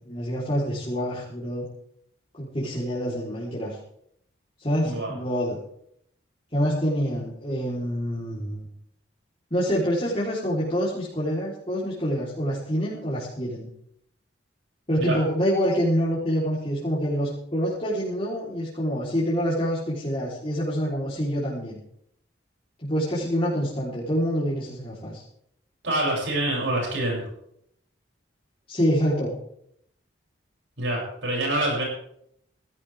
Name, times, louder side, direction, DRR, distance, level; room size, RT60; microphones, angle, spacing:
voice 1, 0.0-1.7 2.4-3.8 4.6-5.6 6.5-8.7 9.5-13.7 14.9-21.8 22.8-25.2 28.7-29.3, equal, 30° left, -8 dB, 4.1 m, -26 dB
voice 2, 4.8-5.1 15.0-15.2 25.8-27.2 30.8-31.8, right 1 dB, 80° right, -2 dB, 7.7 m, -26 dB
19.0 x 17.0 x 3.7 m, 0.72 s
head